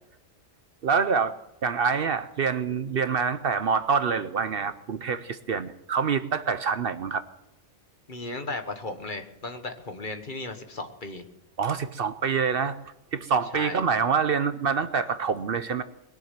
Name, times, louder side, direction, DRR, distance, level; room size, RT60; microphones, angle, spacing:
voice 1, 0.8-1.3 1.6-7.2 11.6-12.8 13.1-15.8, right 6 dB, 55° right, 11 dB, 0.8 m, -26 dB
voice 2, 8.1-11.2 13.5-13.8, left 2 dB, 45° left, 7 dB, 1.5 m, -35 dB
21.0 x 7.3 x 9.2 m, 0.87 s
omnidirectional pair, 1.2 m